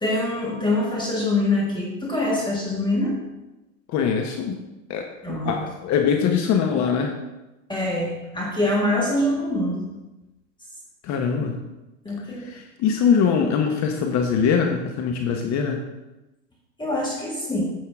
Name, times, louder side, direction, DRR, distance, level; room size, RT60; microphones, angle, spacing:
voice 1, 0.0-3.2 5.2-5.5 7.7-9.8 12.1-12.5 16.8-17.6, left 1 dB, 10° left, -3 dB, 1.9 m, -24 dB
voice 2, 3.9-4.6 4.9-7.1 11.0-11.6 12.4-15.8, left 6 dB, 40° left, 3 dB, 1.1 m, -22 dB
9.6 x 7.7 x 3.6 m, 0.99 s
hypercardioid pair, 110°, 43 cm